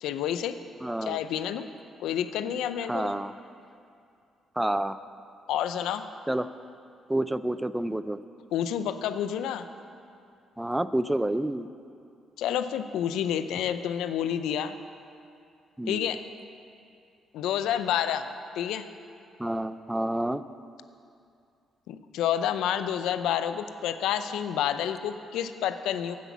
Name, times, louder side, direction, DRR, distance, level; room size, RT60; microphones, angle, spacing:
voice 1, 0.0-0.6 1.0-1.7 2.0-3.1 5.5-6.1 8.5-9.7 12.4-14.8 15.9-16.2 17.3-18.3 18.5-18.9 21.9-26.2, left 10 dB, 85° left, 10 dB, 0.5 m, -29 dB
voice 2, 0.8-1.2 2.9-3.3 4.6-5.0 6.3-6.5 7.1-8.2 10.6-11.7 15.8-16.2 19.4-20.4, right 1 dB, 10° right, 13 dB, 0.4 m, -29 dB
9.4 x 8.1 x 7.3 m, 2.5 s
cardioid pair, 90°, 0 cm